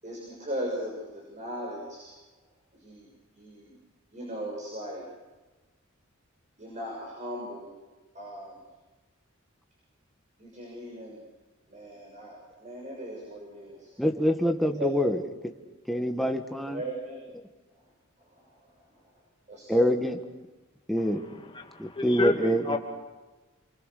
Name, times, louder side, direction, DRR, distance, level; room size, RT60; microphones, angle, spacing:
voice 1, 0.0-2.1 2.7-3.1 3.3-3.8 4.1-5.0 6.6-7.7 8.1-8.6 10.4-11.2 11.7-13.9 14.8-14.9 16.7-17.2 18.2-18.7 19.5-20.1, equal, 35° right, -2 dB, 6.8 m, -38 dB
voice 2, 14.0-15.2 15.9-16.8 19.7-20.2 20.9-21.2 21.8-22.8, equal, ahead, 4 dB, 1.6 m, -25 dB
voice 3, 21.0-22.8, left 3 dB, 25° left, 2 dB, 2.6 m, -31 dB
29.0 x 23.5 x 6.7 m, 1.2 s
head